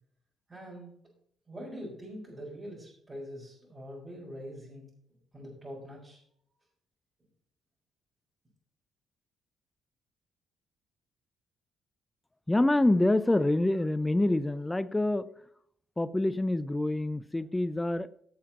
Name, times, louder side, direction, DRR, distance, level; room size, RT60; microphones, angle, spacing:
voice 1, 0.5-0.9 1.5-4.9 5.3-6.2, equal, 25° right, 4.5 m, -43 dB
voice 2, 12.5-15.3 16.0-18.1, left 1 dB, 10° left, 0.5 m, -26 dB
16.0 x 7.0 x 2.9 m
cardioid pair, 90°, 0 cm